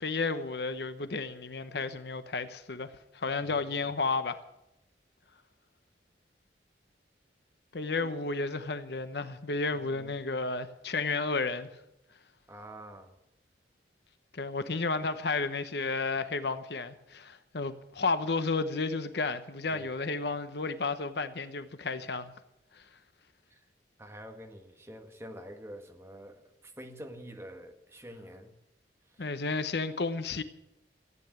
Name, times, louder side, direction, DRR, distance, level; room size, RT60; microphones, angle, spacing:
voice 1, 0.0-4.4 7.7-11.7 14.3-22.3 22.8-22.9 29.2-30.4, left 3 dB, 65° left, 0.9 m, -32 dB
voice 2, 3.4-3.8 7.9-8.3 9.7-10.1 12.5-13.2 19.7-19.9 23.5-23.6 24.0-28.5 29.1-29.3, equal, 15° right, 1.6 m, -47 dB
15.0 x 9.1 x 9.3 m
head